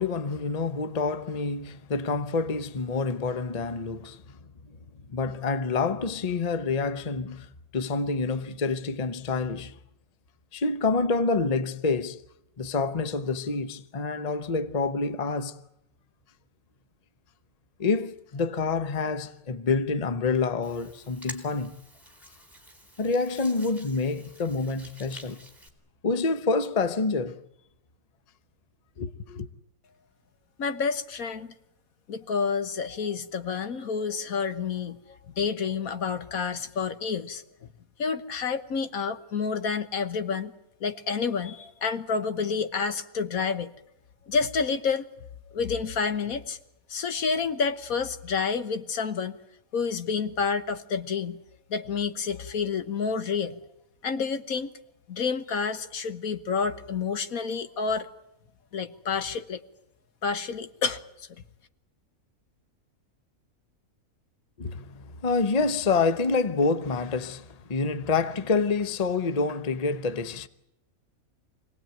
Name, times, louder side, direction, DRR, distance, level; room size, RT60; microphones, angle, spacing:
voice 1, 0.0-4.2 5.1-9.8 10.5-12.2 12.6-15.6 17.8-21.7 23.0-25.4 26.0-27.4 29.0-29.5 64.6-70.5, left 4 dB, 30° left, 0.9 m, -27 dB
Hands, 20.6-25.7, right 1 dB, ahead, 3.7 m, -48 dB
voice 2, 30.6-31.5 32.1-37.7 38.0-40.5 40.8-43.7 44.3-45.0 45.5-46.6 46.9-49.4 49.7-51.4 51.7-53.6 54.0-54.7 55.1-58.1 58.7-59.6 60.2-61.3, left 5 dB, 70° left, 1.6 m, -29 dB
26.0 x 18.5 x 9.1 m
omnidirectional pair, 1.5 m